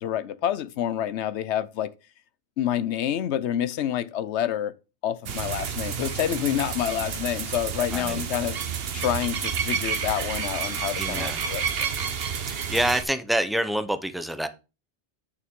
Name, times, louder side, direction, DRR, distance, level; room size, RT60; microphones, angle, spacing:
voice 1, 0.0-1.9 2.6-4.7 5.0-8.6 8.9-11.9, left 10 dB, 75° left, 0.9 m, -28 dB
sound 1, 5.3-13.0, right 7 dB, 60° right, 1.0 m, -30 dB
voice 2, 7.9-8.2 11.0-11.4 12.5-14.5, right 1 dB, ahead, 0.4 m, -27 dB
8.5 x 6.5 x 3.6 m
omnidirectional pair, 1.2 m